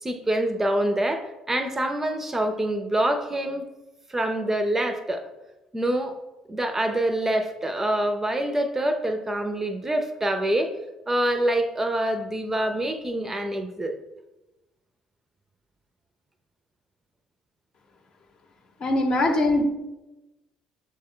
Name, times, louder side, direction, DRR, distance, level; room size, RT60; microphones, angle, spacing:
voice 1, 0.0-3.7 4.1-5.2 5.7-6.2 6.5-10.7 11.1-13.9, right 1 dB, 20° right, 7 dB, 0.5 m, -25 dB
voice 2, 18.8-19.6, left 2 dB, 50° left, 3 dB, 0.8 m, -21 dB
6.1 x 2.2 x 3.7 m, 1.0 s
hypercardioid pair, 50°, 2 cm